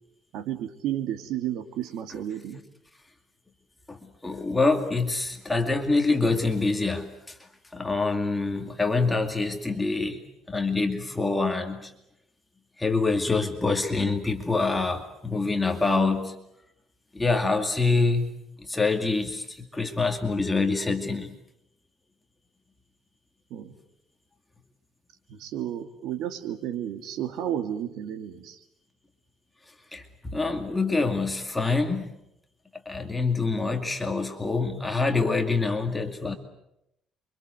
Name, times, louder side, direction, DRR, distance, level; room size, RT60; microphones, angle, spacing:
voice 1, 0.3-2.6 23.5-23.7 25.3-28.6, right 11 dB, 70° right, 8 dB, 2.7 m, -32 dB
voice 2, 4.2-7.4 7.7-10.2 10.5-11.9 12.8-16.4 17.1-18.3 18.6-21.4 29.9-32.1 32.9-36.4, left 3 dB, 10° left, 4 dB, 2.3 m, -25 dB
29.0 x 25.0 x 8.0 m, 0.81 s
cardioid pair, 155°, 0 cm